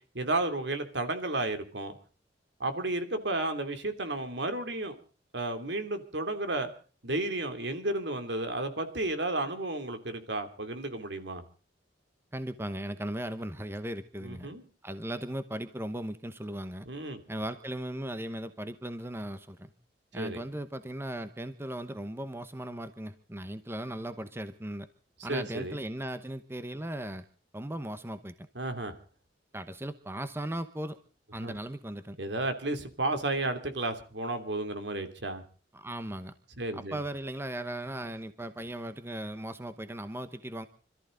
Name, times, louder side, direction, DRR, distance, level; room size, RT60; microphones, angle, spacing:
voice 1, 0.1-1.9 2.6-5.0 5.3-6.7 7.0-11.4 14.2-14.6 16.9-17.2 20.2-20.4 25.3-25.8 28.5-28.9 31.4-31.5 32.2-35.4 36.6-37.0, right 2 dB, 70° right, 8 dB, 2.9 m, -32 dB
voice 2, 12.3-14.5 14.8-16.8 17.3-19.7 20.1-24.9 25.2-27.3 27.5-28.3 29.5-31.0 31.3-32.2 35.7-36.3 36.7-40.7, right 1 dB, 15° right, 11 dB, 0.9 m, -37 dB
26.0 x 14.0 x 3.9 m, 0.39 s
head